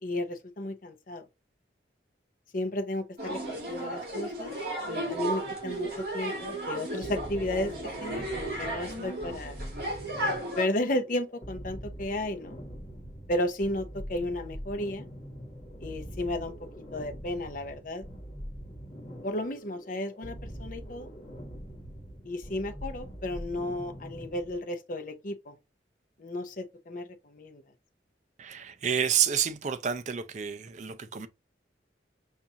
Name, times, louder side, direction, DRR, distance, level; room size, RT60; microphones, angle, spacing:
voice 1, 0.0-1.2 2.5-4.5 4.9-7.7 8.0-9.6 10.6-12.6 13.3-15.0 15.8-16.5 16.9-18.0 19.2-21.1 22.2-25.6 26.2-27.6, left 1 dB, 45° left, 0.6 m, -33 dB
sound 1, 3.2-10.7, right 1 dB, 55° right, 2.2 m, -34 dB
sound 2, 7.0-24.6, equal, 30° left, 1.1 m, -43 dB
voice 2, 28.4-31.3, right 8 dB, 40° right, 0.4 m, -29 dB
5.4 x 2.4 x 2.8 m
head